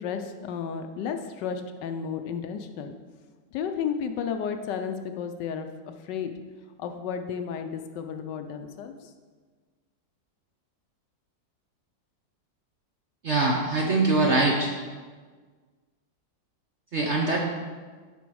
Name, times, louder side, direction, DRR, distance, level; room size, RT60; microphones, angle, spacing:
voice 1, 0.0-2.9 3.5-6.3 6.8-9.1, left 7 dB, 75° left, 7 dB, 1.2 m, -33 dB
voice 2, 13.2-14.7 16.9-17.4, right 2 dB, 55° right, 0 dB, 0.8 m, -23 dB
11.0 x 4.3 x 4.7 m, 1.5 s
omnidirectional pair, 2.0 m